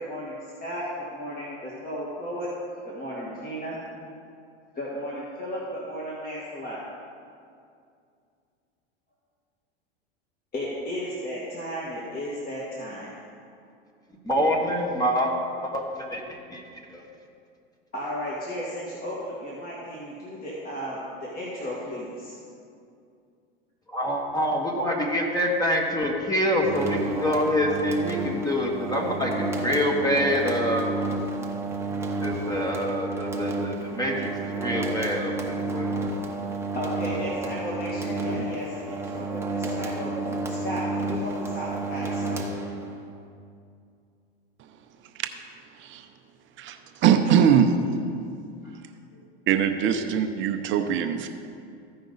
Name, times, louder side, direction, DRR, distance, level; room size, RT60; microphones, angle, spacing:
voice 1, 0.0-2.5 2.8-3.8 4.7-6.8 10.5-13.1 17.9-22.4 36.7-42.4 48.6-48.8 49.1-49.2, equal, 30° left, -6 dB, 1.8 m, -34 dB
voice 2, 14.2-15.3 15.6-16.6 16.9-17.0 23.9-30.9 32.2-35.9 38.0-38.4, equal, 10° left, -1 dB, 1.3 m, -26 dB
sound 1, 26.6-43.1, right 2 dB, 10° right, 1.0 m, -31 dB
voice 3, 47.0-47.8 49.5-51.3, right 8 dB, 40° right, 7 dB, 0.7 m, -21 dB
15.0 x 5.3 x 4.0 m, 2.4 s
hypercardioid pair, 105°, 31 cm